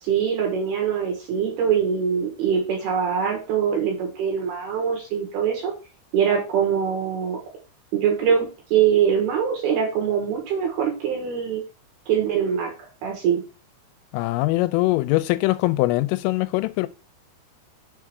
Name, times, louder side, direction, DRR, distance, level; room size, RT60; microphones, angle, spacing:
voice 1, 0.0-5.7 6.1-7.4 7.9-11.6 12.1-12.7 13.0-13.4, right 7 dB, 65° right, 2.8 m, -23 dB
voice 2, 14.1-16.9, left 19 dB, 90° left, 3.2 m, -22 dB
7.0 x 3.7 x 4.6 m
omnidirectional pair, 5.7 m